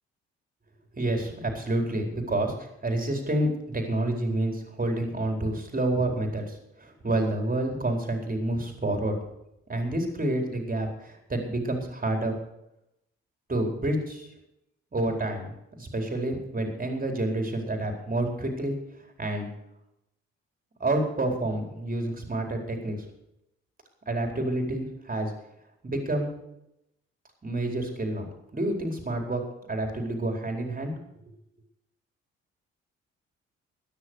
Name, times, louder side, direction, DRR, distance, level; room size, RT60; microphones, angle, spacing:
voice 1, 0.9-9.2 9.7-12.3 13.5-14.3 14.9-18.7 19.2-19.5 20.8-23.0 24.1-25.3 25.8-26.3 27.4-29.4 29.7-30.9, right 1 dB, 30° right, 2 dB, 4.5 m, -29 dB
13.5 x 10.5 x 6.4 m, 0.83 s
hypercardioid pair, 50°, 29 cm